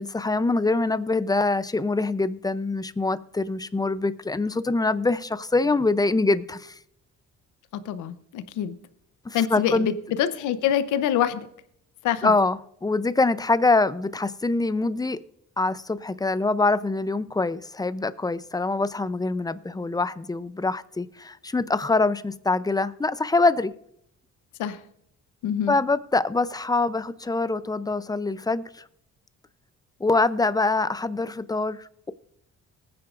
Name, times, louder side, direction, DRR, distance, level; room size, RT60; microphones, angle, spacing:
voice 1, 0.0-6.8 9.2-9.9 12.2-15.2 15.6-23.7 25.7-28.8 30.0-32.1, left 3 dB, 15° left, 15 dB, 0.6 m, -24 dB
voice 2, 7.7-8.7 9.3-11.5 12.0-12.3 24.6-24.8 25.4-25.8, left 10 dB, 90° left, 12 dB, 0.9 m, -25 dB
19.5 x 9.5 x 2.5 m, 0.72 s
cardioid pair, 90°, 30 cm